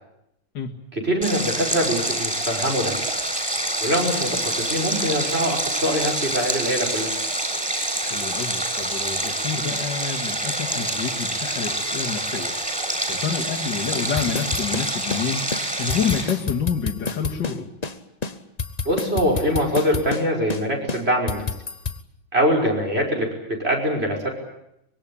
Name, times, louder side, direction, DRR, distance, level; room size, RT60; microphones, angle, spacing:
voice 1, 1.0-3.0 3.8-7.1 18.9-21.5 22.3-24.3, equal, 30° right, 0 dB, 6.0 m, -23 dB
Stream, 1.2-16.2, right 1 dB, 5° right, 7.3 m, -26 dB
voice 2, 8.0-12.5 12.8-17.7, left 6 dB, 60° left, -1 dB, 2.6 m, -28 dB
sound 1, 14.2-15.2 15.5-15.6 15.9-17.6 17.8-17.9 18.2-20.2 20.5-20.6 20.9-22.0, left 4 dB, 35° left, 0.7 m, -29 dB
24.5 x 22.5 x 8.7 m, 0.80 s
omnidirectional pair, 2.2 m